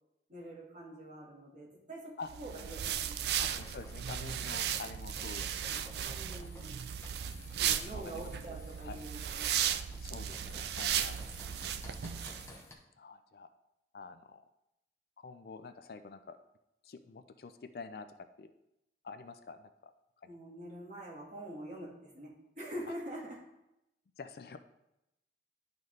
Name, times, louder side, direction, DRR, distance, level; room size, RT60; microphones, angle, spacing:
voice 1, 0.3-3.3 6.0-6.9 7.2-9.8 20.3-23.5, right 1 dB, 45° right, -4 dB, 1.8 m, -46 dB
sound 1, 2.3-12.5, right 9 dB, 65° right, 0.3 m, -36 dB
sound 2, 2.5-12.7, left 2 dB, 15° left, 0.8 m, -54 dB
voice 2, 3.4-5.8 6.4-6.5 7.6-8.5 8.8-9.0 10.0-11.2 12.5-12.6 13.0-13.5 13.9-14.4 15.2-16.4 16.8-18.1 18.4-18.5 19.0-19.9 20.2-20.3 24.2-24.6, left 4 dB, 55° left, 9 dB, 0.4 m, -47 dB
10.5 x 4.0 x 3.2 m, 0.88 s
head